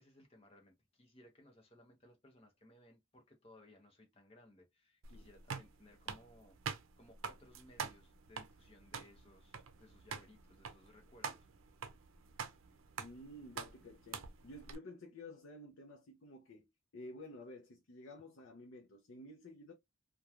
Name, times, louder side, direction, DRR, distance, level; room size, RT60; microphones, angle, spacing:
voice 1, 0.0-6.6 7.0-11.5, left 1 dB, 30° left, 0.8 m, -62 dB
sound 1, 5.0-14.8, right 6 dB, 85° right, 0.5 m, -46 dB
voice 2, 13.0-19.7, left 1 dB, 85° left, 0.5 m, -52 dB
3.0 x 2.2 x 2.3 m
head